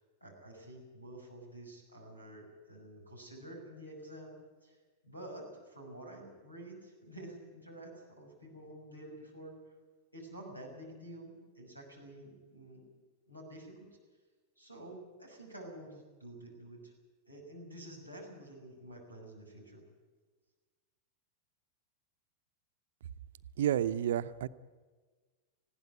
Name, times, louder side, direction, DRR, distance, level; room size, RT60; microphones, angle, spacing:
voice 1, 0.2-4.8 5.0-9.6 10.1-12.8 13.3-13.9 14.6-16.9 17.3-19.8, right 1 dB, 85° left, 2 dB, 6.4 m, -49 dB
voice 2, 23.6-24.5, right 11 dB, 60° right, 12 dB, 0.8 m, -30 dB
20.0 x 16.0 x 9.6 m, 1.4 s
figure-of-eight pair, 90°, 0 cm